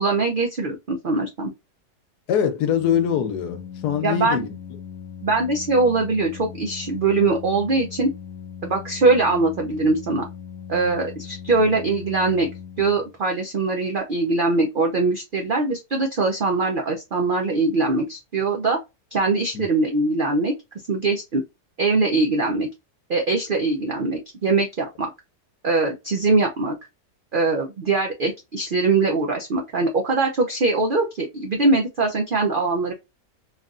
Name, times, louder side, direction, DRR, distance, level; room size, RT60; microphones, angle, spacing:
voice 1, 0.0-1.5 4.0-4.4 5.2-8.1 8.6-10.2 10.7-12.5 12.8-18.8 19.1-20.5 20.9-21.4 21.8-22.7 23.1-25.1 25.6-26.8 27.3-32.9, right 3 dB, 75° right, 0.4 m, -22 dB
voice 2, 2.3-4.6 19.5-19.7, left 8 dB, 85° left, 1.2 m, -23 dB
Organ, 2.6-13.4, left 7 dB, 70° left, 1.0 m, -39 dB
3.3 x 2.4 x 2.4 m
omnidirectional pair, 1.7 m